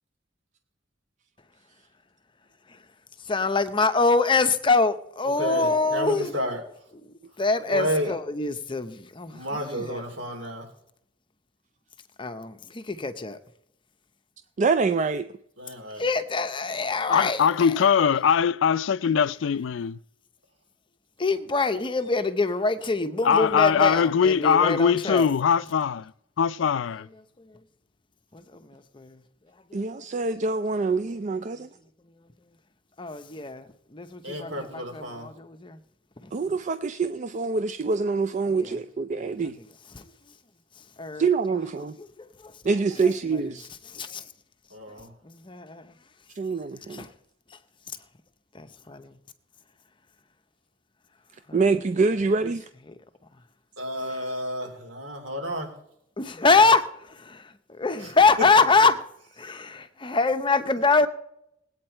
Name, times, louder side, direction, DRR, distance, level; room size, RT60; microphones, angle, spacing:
voice 1, 3.3-6.3 7.4-10.0 12.2-13.4 16.0-17.7 21.2-25.3 28.3-28.4 28.7-29.2 29.7-29.9 33.0-35.8 38.6-38.7 39.1-39.3 39.9-40.0 41.0-41.2 42.2-42.5 43.0-43.1 43.9-44.2 45.2-45.8 46.9-47.1 48.5-49.1 51.5-51.6 54.1-54.2 56.2-59.0 59.4-61.1, left 3 dB, 25° left, 0.7 m, -25 dB
voice 2, 5.4-6.6 7.7-8.1 9.3-10.7 15.6-16.0 34.2-35.3 44.7-45.1 53.8-55.7 58.0-58.1, equal, 75° right, 3.4 m, -31 dB
voice 3, 14.6-15.3 29.7-31.7 36.3-39.6 41.2-41.9 42.6-43.7 46.4-47.0 51.5-52.7, right 4 dB, 40° right, 0.4 m, -25 dB
voice 4, 17.1-20.0 23.2-26.1 26.4-27.1, left 7 dB, 70° left, 0.4 m, -21 dB
19.0 x 8.7 x 4.4 m
head